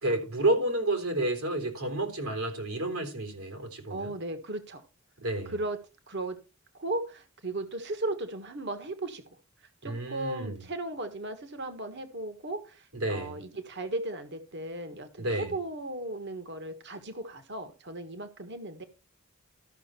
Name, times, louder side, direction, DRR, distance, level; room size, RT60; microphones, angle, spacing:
voice 1, 0.0-4.1 5.2-5.5 9.8-10.6 12.9-13.4 15.2-15.5, right 1 dB, 80° right, 3.7 m, -30 dB
voice 2, 3.9-4.8 5.5-5.8 6.1-6.4 6.7-9.2 9.8-18.8, right 2 dB, 55° right, 1.6 m, -36 dB
13.5 x 6.4 x 4.4 m
head